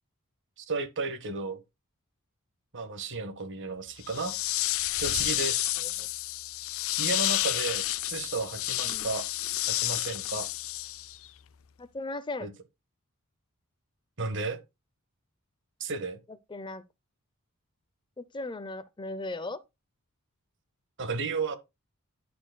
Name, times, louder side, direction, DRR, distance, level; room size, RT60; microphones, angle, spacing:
voice 1, 0.6-1.6 2.7-4.3 5.0-5.7 7.0-9.3 9.7-10.5 12.4-12.5 14.2-14.6 15.8-16.2 21.0-21.6, right 4 dB, 55° right, 1.4 m, -33 dB
sound 1, 4.0-11.3, left 16 dB, 65° left, 0.5 m, -30 dB
voice 2, 5.8-6.1 8.8-9.1 11.8-12.5 16.5-16.8 18.2-19.6, left 2 dB, 20° left, 0.6 m, -37 dB
11.0 x 6.7 x 2.2 m
head